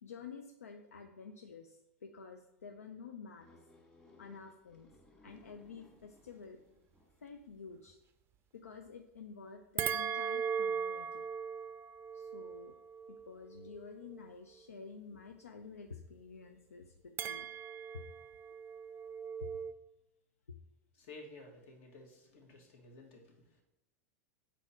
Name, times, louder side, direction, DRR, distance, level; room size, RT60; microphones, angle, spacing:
voice 1, 0.0-3.5 4.2-4.9 5.2-6.6 7.2-8.0 8.5-11.2 12.1-12.7 13.1-17.5 17.9-18.0 19.4-19.5, left 5 dB, 90° left, 5 dB, 0.4 m, -50 dB
sound 1, 3.4-7.4, left 2 dB, 15° left, 1.7 m, -63 dB
sound 2, 9.8-14.3 17.2-19.7, right 7 dB, 30° right, 0.4 m, -39 dB
voice 2, 21.0-23.6, left 2 dB, 60° left, 1 dB, 1.6 m, -54 dB
4.5 x 4.1 x 5.7 m, 0.91 s
hypercardioid pair, 90°, 8 cm